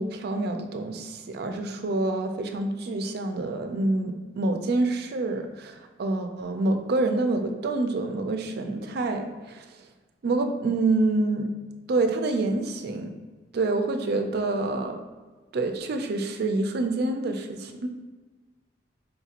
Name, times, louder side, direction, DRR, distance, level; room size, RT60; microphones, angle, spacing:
voice 1, 0.0-9.7 10.2-11.5 11.9-13.1 13.5-15.0 15.5-17.9, right 2 dB, 60° right, 6 dB, 0.4 m, -27 dB
4.5 x 2.8 x 2.4 m, 1.3 s
head